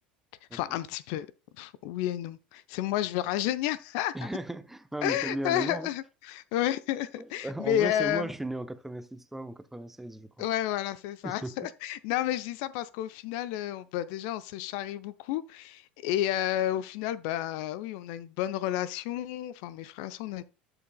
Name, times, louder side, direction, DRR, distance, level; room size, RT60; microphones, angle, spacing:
voice 1, 0.5-1.3 1.5-4.3 5.0-8.3 10.4-20.4, left 12 dB, 55° left, 0.6 m, -31 dB
voice 2, 4.1-5.9 7.2-10.5 11.2-11.5, right 1 dB, 5° right, 0.7 m, -36 dB
12.0 x 7.0 x 2.2 m
figure-of-eight pair, 75°, 5 cm